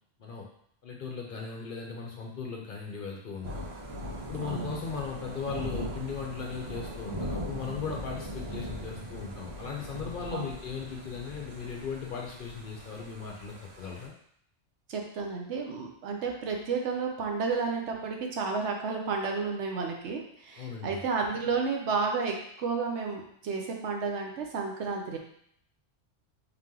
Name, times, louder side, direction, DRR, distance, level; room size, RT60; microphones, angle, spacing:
voice 1, 0.8-3.7 4.2-14.1 20.6-21.0, left 6 dB, 55° left, 0 dB, 0.7 m, -38 dB
Thunder / Rain, 3.4-14.1, equal, 90° right, 1.9 m, -40 dB
voice 2, 4.4-4.8 10.3-10.5 14.9-25.2, right 4 dB, 70° right, 1 dB, 1.0 m, -32 dB
3.9 x 2.9 x 3.7 m, 0.68 s
omnidirectional pair, 1.2 m